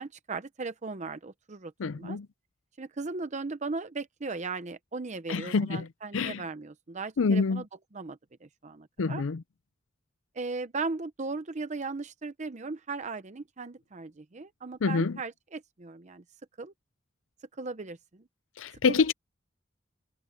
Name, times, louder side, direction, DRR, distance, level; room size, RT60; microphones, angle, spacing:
voice 1, 0.0-2.2 2.8-7.7 7.9-9.2 10.3-16.2 16.6-16.7 17.6-18.2 18.9-19.1, right 3 dB, 35° right, 0.7 m, -37 dB
voice 2, 1.8-2.3 5.3-5.9 6.1-6.4 7.2-7.6 9.0-9.4 14.8-15.2 18.6-19.1, left 4 dB, 85° left, 0.5 m, -26 dB
head